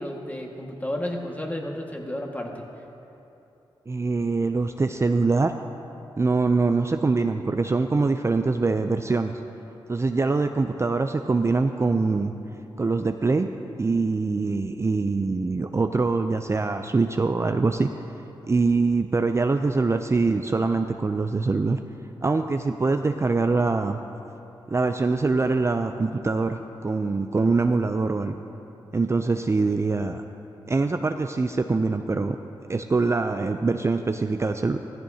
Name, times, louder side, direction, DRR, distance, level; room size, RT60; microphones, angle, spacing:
voice 1, 0.0-2.6, left 1 dB, 15° left, 0 dB, 1.8 m, -32 dB
voice 2, 3.9-5.5 6.2-9.4 9.9-12.3 12.8-13.5 13.8-17.9 18.5-21.8 22.2-24.0 24.7-28.4 28.9-30.2 30.7-32.4 32.7-34.8, right 3 dB, 30° right, 7 dB, 0.4 m, -23 dB
15.0 x 14.0 x 2.8 m, 2.9 s
cardioid pair, 60°, 9 cm